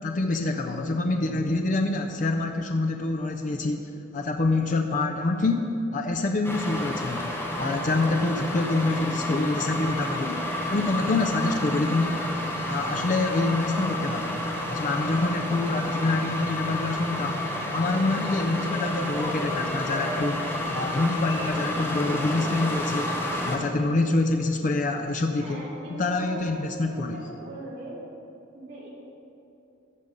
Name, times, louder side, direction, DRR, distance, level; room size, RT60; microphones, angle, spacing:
voice 1, 0.0-10.4 10.7-12.3 12.6-14.4 14.7-17.3 17.7-20.4 20.7-23.2 23.4-25.6 25.9-27.2, left 2 dB, 40° left, 4 dB, 0.5 m, -26 dB
sound 1, 6.4-23.6, left 1 dB, 10° left, 0.9 m, -30 dB
voice 2, 25.4-28.0 28.5-28.9, right 1 dB, 50° right, -6 dB, 2.6 m, -40 dB
14.0 x 5.3 x 5.2 m, 2.8 s
head